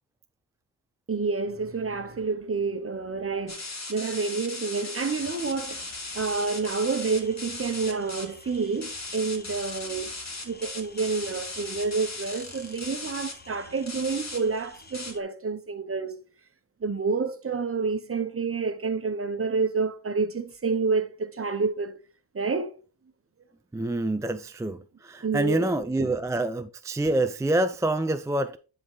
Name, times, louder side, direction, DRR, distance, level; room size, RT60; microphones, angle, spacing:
voice 1, 1.1-10.1 10.4-16.2 16.8-22.0 22.3-22.7 25.2-25.7 26.0-26.2, right 4 dB, 30° right, 1.1 m, -29 dB
sound 1, 3.5-8.2 8.8-13.3 13.9-14.4 14.9-15.1, left 3 dB, 40° left, 2.4 m, -37 dB
sound 2, 5.2-15.2, left 3 dB, 25° left, 1.2 m, -50 dB
voice 2, 23.7-28.6, right 2 dB, 10° right, 0.4 m, -26 dB
10.5 x 4.0 x 3.8 m
cardioid pair, 95°, 42 cm